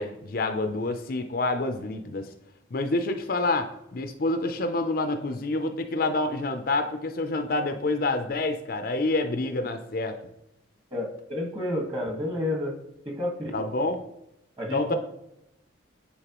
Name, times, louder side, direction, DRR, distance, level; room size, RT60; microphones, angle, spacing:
voice 1, 0.0-2.3 2.7-10.2 13.5-14.0 14.7-14.9, left 2 dB, 50° left, 7 dB, 0.5 m, -27 dB
voice 2, 10.9-12.7 13.0-13.5 14.6-14.9, left 1 dB, 25° right, 0 dB, 1.5 m, -30 dB
9.8 x 4.4 x 3.0 m, 0.85 s
head